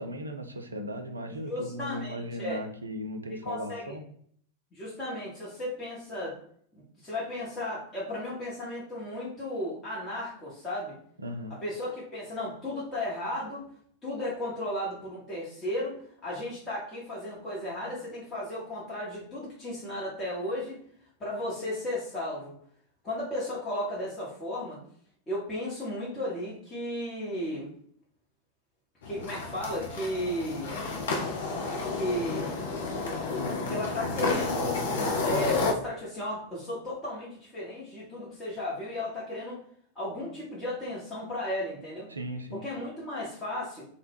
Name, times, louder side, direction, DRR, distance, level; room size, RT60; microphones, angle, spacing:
voice 1, 0.0-4.0 11.2-11.5 42.1-42.6, equal, 80° right, 4 dB, 0.3 m, -37 dB
voice 2, 1.4-2.6 3.4-3.9 4.7-6.4 7.0-11.0 11.6-13.6 14.0-20.8 21.2-22.5 23.0-24.8 25.3-27.7 29.0-30.8 31.9-32.6 33.7-39.6 39.9-42.1 42.5-43.9, left 1 dB, 20° left, -8 dB, 0.8 m, -34 dB
sound 1, 29.0-35.7, left 3 dB, 60° left, 0.4 m, -31 dB
2.1 x 2.0 x 3.2 m, 0.63 s
figure-of-eight pair, 90°, 0 cm